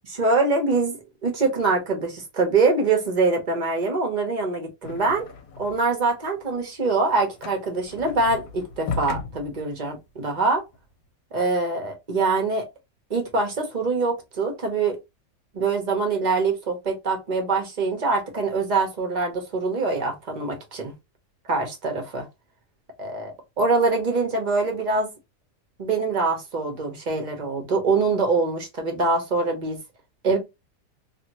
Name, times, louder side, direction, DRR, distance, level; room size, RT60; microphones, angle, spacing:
voice 1, 0.2-1.0 1.2-5.2 5.6-10.6 11.3-12.6 13.1-15.0 15.5-20.9 21.5-22.3 23.0-25.1 25.8-29.8 30.2-30.4, right 3 dB, 35° right, 1.0 m, -24 dB
sound 1, 4.8-6.0 6.3-10.9, left 4 dB, 75° left, 1.0 m, -36 dB
2.8 x 2.6 x 2.8 m
omnidirectional pair, 1.5 m